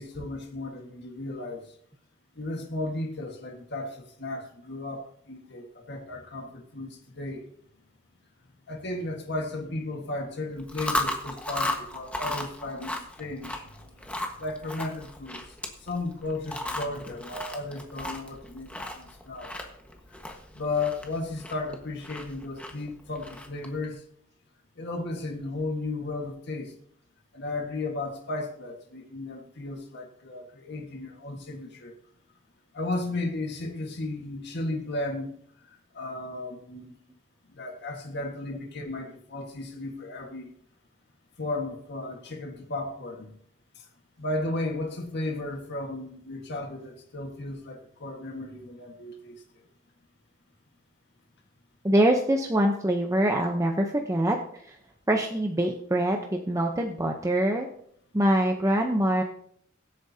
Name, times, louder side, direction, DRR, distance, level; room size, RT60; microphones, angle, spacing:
voice 1, 0.0-1.6 2.4-7.4 8.7-13.7 14.4-15.4 15.8-19.5 20.6-24.0 24.8-26.7 27.3-32.0 32.7-35.4 35.9-37.0 37.5-40.5 41.4-43.3 44.2-49.4, left 2 dB, 55° left, 2 dB, 1.6 m, -34 dB
Chewing mastication, 10.6-23.8, left 1 dB, 5° left, 1.4 m, -36 dB
voice 2, 51.8-54.4 54.7-54.8 55.1-57.7 58.1-59.2, right 1 dB, 15° right, 2 dB, 0.8 m, -24 dB
22.5 x 8.6 x 2.8 m, 0.67 s
head